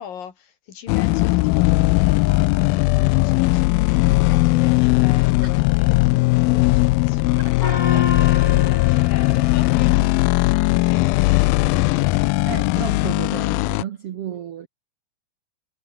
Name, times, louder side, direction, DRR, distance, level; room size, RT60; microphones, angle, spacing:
voice 1, 0.0-10.2 10.9-12.2, left 8 dB, 70° left, 4.3 m, -40 dB
sound 1, 0.9-13.8, left 22 dB, 85° left, 2.3 m, -18 dB
voice 2, 7.4-7.8 10.8-11.0 11.8-11.9 12.5-14.7, right 9 dB, 65° right, 1.5 m, -33 dB
Gong, 7.6-10.5, left 4 dB, 30° left, 2.4 m, -31 dB
omnidirectional pair, 4.2 m